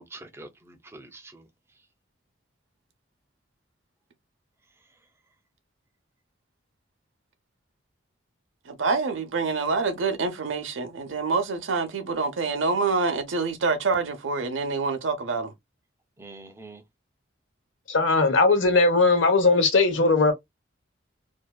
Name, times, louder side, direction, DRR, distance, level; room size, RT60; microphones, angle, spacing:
voice 1, 0.0-1.4 16.2-16.8, right 2 dB, 15° right, 0.4 m, -45 dB
voice 2, 8.7-15.5, right 4 dB, 90° right, 0.6 m, -26 dB
voice 3, 17.9-20.3, left 3 dB, 85° left, 0.8 m, -19 dB
2.6 x 2.3 x 2.2 m
head